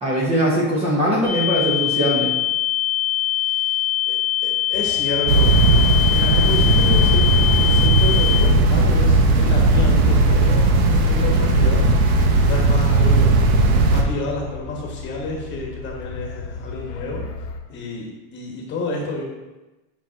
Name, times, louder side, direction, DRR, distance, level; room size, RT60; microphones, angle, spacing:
voice 1, 0.0-2.3, equal, 15° right, -5 dB, 0.9 m, -20 dB
sound 1, 1.2-8.4, left 14 dB, 30° right, 2.5 m, -22 dB
voice 2, 3.2-5.9 6.1-11.9 12.4-19.2, left 3 dB, 25° left, -1 dB, 1.3 m, -30 dB
sound 2, 4.7-17.6, left 3 dB, 50° left, 1.1 m, -33 dB
sound 3, 5.3-14.0, right 2 dB, 85° right, 1.2 m, -16 dB
10.0 x 5.9 x 2.9 m, 1.1 s
supercardioid pair, 175°, 42 cm